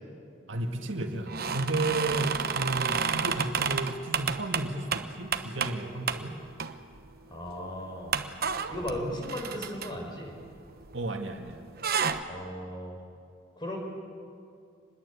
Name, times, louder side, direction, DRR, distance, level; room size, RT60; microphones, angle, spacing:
voice 1, 0.5-6.4 10.9-11.6, right 2 dB, 65° right, 4 dB, 1.9 m, -33 dB
sound 1, 1.3-5.8 6.1-6.2 6.6-7.1 7.4-7.5 8.1-11.2 11.5-12.2, right 6 dB, 50° right, 1.0 m, -31 dB
voice 2, 7.3-8.1 8.7-10.3 12.3-13.0 13.6-13.8, equal, 20° left, 1 dB, 5.0 m, -36 dB
26.0 x 21.0 x 8.5 m, 2.4 s
head